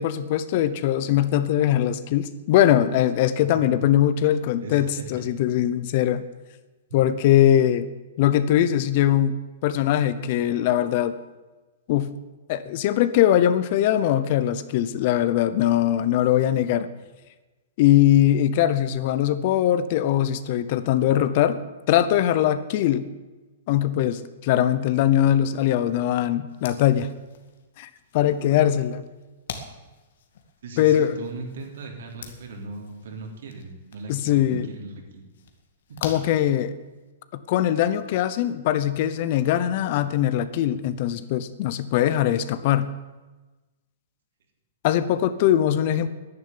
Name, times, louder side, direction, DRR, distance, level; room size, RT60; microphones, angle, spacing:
voice 1, 0.0-6.2 6.9-7.9 8.2-9.4 9.6-11.2 11.9-12.1 12.5-16.9 17.8-21.6 21.9-23.1 23.7-27.1 27.8-29.0 30.8-31.2 34.1-34.7 36.0-36.7 37.3-42.9 44.8-46.1, left 11 dB, 40° left, 14 dB, 0.8 m, -21 dB
voice 2, 3.3-3.7 4.6-5.3 28.4-28.5 30.6-35.3 35.9-36.1, right 3 dB, 70° right, 2 dB, 3.6 m, -38 dB
sound 1, 26.5-37.1, left 6 dB, 65° left, 2.1 m, -45 dB
11.0 x 10.5 x 9.8 m, 1.2 s
hypercardioid pair, 170°, 0 cm